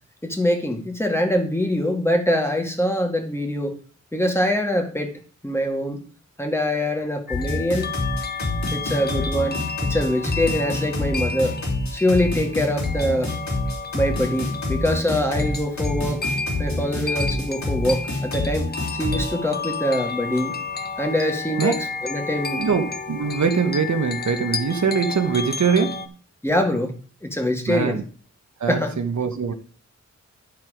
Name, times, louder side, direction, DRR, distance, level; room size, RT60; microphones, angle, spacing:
voice 1, 0.2-3.7 4.1-5.1 5.4-6.0 6.4-7.9 8.7-11.6 11.9-13.3 13.9-16.3 16.6-20.6 21.0-21.8 22.0-22.6 26.4-26.9 27.2-28.0 28.7-28.9, left 1 dB, 10° left, 2.1 m, -24 dB
sound 1, 7.3-19.3, left 2 dB, 70° left, 3.3 m, -27 dB
sound 2, 7.3-26.1, left 4 dB, 35° left, 0.9 m, -32 dB
voice 2, 22.6-26.1 27.7-28.0 28.6-29.5, right 5 dB, 75° right, 1.1 m, -22 dB
11.5 x 4.6 x 5.0 m
wide cardioid pair, 65°, 29 cm